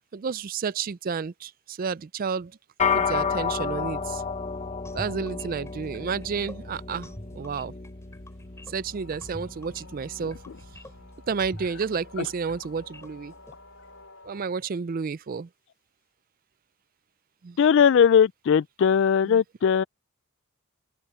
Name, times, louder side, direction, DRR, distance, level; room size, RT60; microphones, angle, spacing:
voice 1, 0.0-2.6 2.9-4.2 4.9-7.7 8.7-10.4 11.3-13.3 14.2-15.5 17.4-17.6 19.2-19.4, right 5 dB, 40° right, 0.4 m, -31 dB
sound 1, 2.8-12.3, left 6 dB, 30° left, 0.9 m, -32 dB
sound 2, 4.8-13.5, left 1 dB, 15° left, 5.0 m, -46 dB
sound 3, 8.3-14.5, left 2 dB, 70° left, 4.3 m, -52 dB
voice 2, 17.6-19.8, left 7 dB, 55° left, 0.3 m, -19 dB
open air
head